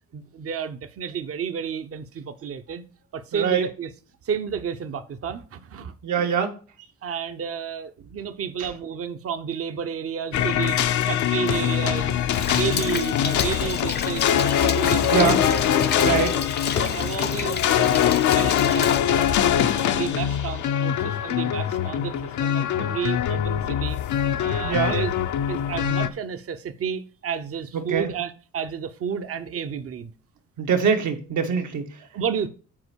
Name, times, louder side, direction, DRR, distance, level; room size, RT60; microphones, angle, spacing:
voice 1, 0.1-2.8 3.1-3.9 4.2-6.3 7.0-10.8 11.0-12.2 12.4-14.3 14.6-15.3 16.7-19.3 19.9-24.0 24.4-25.1 25.5-30.1 32.1-32.5, right 7 dB, 50° right, 0.9 m, -31 dB
voice 2, 3.3-3.6 6.0-6.5 15.1-15.4 16.0-16.4 24.6-25.0 27.7-28.1 30.6-31.9, right 7 dB, 75° right, 1.6 m, -23 dB
sound 1, 10.3-26.1, left 9 dB, 75° left, 0.8 m, -23 dB
Rain, 12.3-19.0, left 6 dB, 35° left, 0.6 m, -32 dB
7.7 x 4.5 x 6.3 m
cardioid pair, 90°, 30 cm